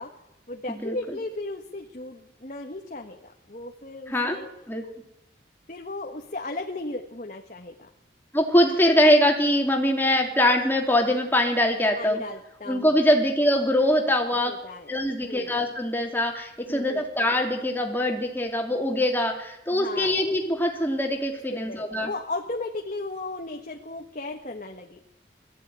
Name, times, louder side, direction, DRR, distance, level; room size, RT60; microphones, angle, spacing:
voice 1, 0.0-4.5 5.7-7.9 11.9-13.0 14.4-15.0 15.2-15.6 16.7-17.1 19.7-20.1 21.5-25.0, left 2 dB, 45° left, 2 dB, 1.4 m, -36 dB
voice 2, 0.7-1.2 4.1-4.4 4.7-4.8 8.3-12.2 12.7-14.5 14.9-22.1, left 1 dB, 10° left, 2 dB, 2.9 m, -23 dB
21.0 x 14.5 x 9.5 m, 0.86 s
head